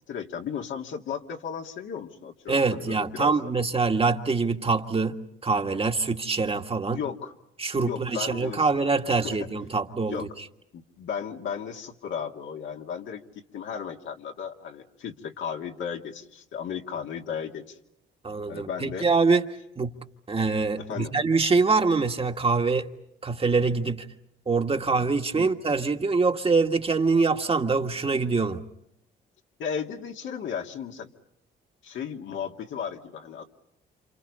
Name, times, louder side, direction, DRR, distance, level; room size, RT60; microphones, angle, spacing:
voice 1, 0.1-3.3 6.9-7.3 7.7-8.7 9.0-9.5 10.0-10.3 10.7-13.2 13.5-17.8 18.5-19.1 20.8-21.1 25.4-25.5 29.6-31.1 31.8-33.5, left 7 dB, 75° left, 2.6 m, -35 dB
voice 2, 2.5-5.2 5.4-7.0 7.6-10.2 18.2-19.4 19.8-19.9 20.3-22.9 23.2-24.1 24.5-28.6, right 4 dB, 30° right, 1.8 m, -24 dB
30.0 x 27.5 x 5.5 m
cardioid pair, 90°, 20 cm